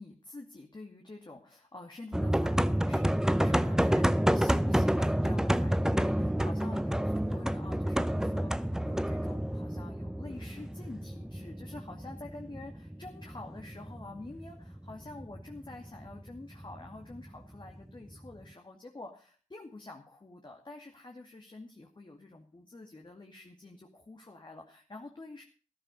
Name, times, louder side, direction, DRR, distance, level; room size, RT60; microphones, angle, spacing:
voice 1, 0.0-25.4, left 2 dB, 35° left, 1 dB, 2.3 m, -47 dB
sound 1, 2.1-18.3, equal, 5° right, 0.7 m, -29 dB
13.5 x 11.5 x 5.4 m, 0.37 s
cardioid pair, 50°, 13 cm